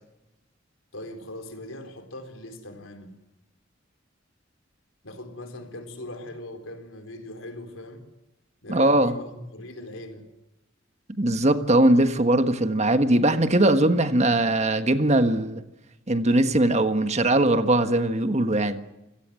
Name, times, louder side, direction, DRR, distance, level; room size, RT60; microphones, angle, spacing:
voice 1, 0.9-3.1 5.0-8.1 8.6-10.3, left 1 dB, 90° left, 6 dB, 4.4 m, -40 dB
voice 2, 8.7-9.1 11.2-15.6 16.1-18.8, right 1 dB, 35° right, 9 dB, 1.5 m, -20 dB
28.0 x 17.5 x 7.7 m, 0.98 s
head